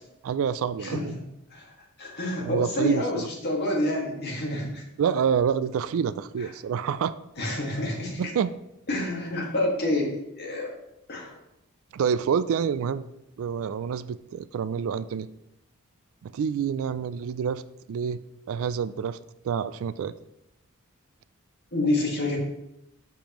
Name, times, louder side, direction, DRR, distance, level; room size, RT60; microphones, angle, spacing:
voice 1, 0.2-1.2 2.4-3.3 5.0-7.1 8.2-8.5 11.9-13.0 13.4-15.3 16.2-17.6 17.9-18.2 18.5-19.2 19.4-20.1, right 7 dB, 65° right, 15 dB, 0.3 m, -27 dB
voice 2, 0.8-1.1 1.5-1.7 2.0-4.8 6.4-6.5 7.4-8.3 8.9-10.7 11.1-11.4 21.7-22.4, left 1 dB, 50° left, -2 dB, 1.9 m, -28 dB
7.1 x 6.8 x 3.0 m, 0.86 s
head